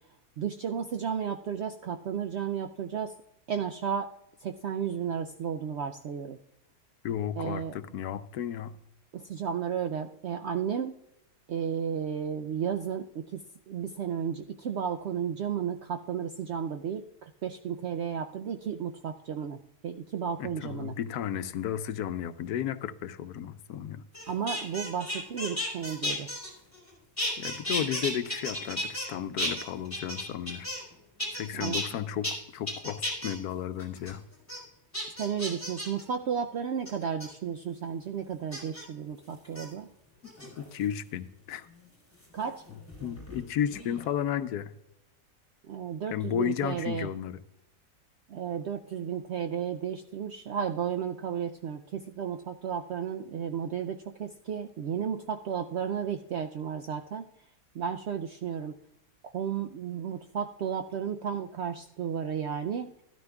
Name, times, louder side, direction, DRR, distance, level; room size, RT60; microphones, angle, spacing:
voice 1, 0.4-3.1 3.5-4.1 4.4-6.4 7.4-7.8 9.1-11.0 11.5-13.4 13.7-17.0 17.4-21.0 24.3-26.3 31.5-31.8 35.2-39.9 42.3-42.7 45.7-47.1 48.3-57.2 57.7-58.8 59.2-62.9, right 7 dB, 80° right, 5 dB, 0.6 m, -33 dB
voice 2, 7.0-8.8 20.4-24.0 27.4-30.7 31.3-34.2 40.2-41.7 43.0-44.7 46.1-47.4, left 9 dB, 80° left, 11 dB, 1.1 m, -33 dB
sound 1, 24.1-26.9 27.2-29.1 29.4-30.9 31.2-31.9 32.2-32.3 32.7-33.3 33.8-34.1 34.5-34.6 34.9-36.0 36.9-37.3 38.5-38.8 39.4-39.7 40.2-40.8 42.2-43.4 43.7-44.1, left 1 dB, 10° left, 3.5 m, -34 dB
13.0 x 12.5 x 2.3 m, 0.82 s
omnidirectional pair, 1.7 m